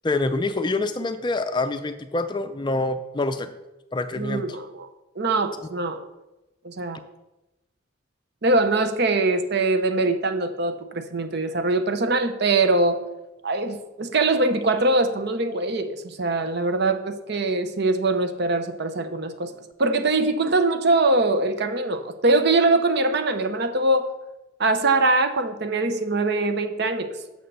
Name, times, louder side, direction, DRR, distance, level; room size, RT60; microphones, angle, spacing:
voice 1, 0.0-3.5 3.9-4.4, left 2 dB, 20° left, 10 dB, 0.4 m, -26 dB
voice 2, 4.2-4.9 5.2-6.0 6.6-7.0 8.4-13.0 13.4-19.5 19.8-24.1 24.6-27.1, right 2 dB, 55° right, 8 dB, 0.8 m, -22 dB
6.6 x 6.4 x 6.8 m, 0.99 s
head